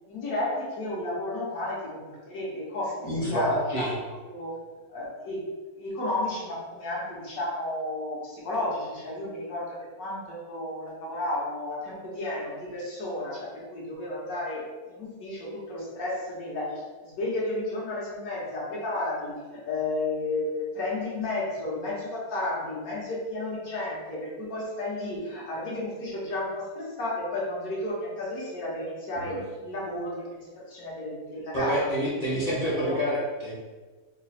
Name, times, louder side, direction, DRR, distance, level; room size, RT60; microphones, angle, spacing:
voice 1, 0.1-4.0 4.2-4.5 4.9-5.5 5.8-31.8 32.3-33.0, left 1 dB, 75° left, -5 dB, 1.4 m, -32 dB
voice 2, 3.0-3.9 29.2-29.4 31.5-33.5, equal, 40° left, -7 dB, 0.6 m, -28 dB
3.3 x 2.1 x 4.1 m, 1.3 s
omnidirectional pair, 1.6 m